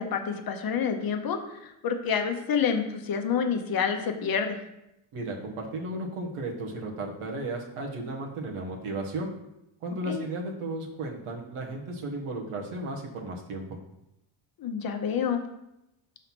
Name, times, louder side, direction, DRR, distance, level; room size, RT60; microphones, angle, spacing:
voice 1, 0.0-4.6 10.1-10.2 14.6-15.4, left 6 dB, 45° left, 5 dB, 0.9 m, -28 dB
voice 2, 5.1-9.3 9.8-13.8, right 2 dB, 85° right, 0 dB, 1.6 m, -34 dB
5.6 x 4.1 x 6.1 m, 0.87 s
cardioid pair, 145°, 50 cm